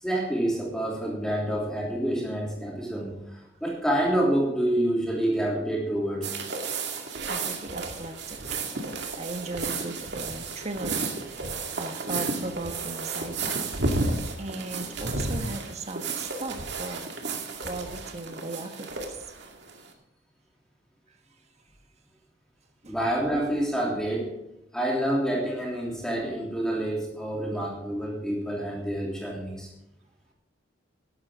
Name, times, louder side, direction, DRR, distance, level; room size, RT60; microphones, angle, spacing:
voice 1, 0.0-6.3 22.9-24.3 24.7-29.7, right 1 dB, 5° left, -3 dB, 3.1 m, -28 dB
sound 1, 6.2-19.9, right 3 dB, 60° right, 2.2 m, -32 dB
voice 2, 7.3-8.6 8.9-11.4 11.8-13.8 14.4-19.3 22.8-23.0, right 2 dB, 35° right, 5 dB, 1.4 m, -38 dB
14.5 x 11.5 x 3.7 m, 0.89 s
head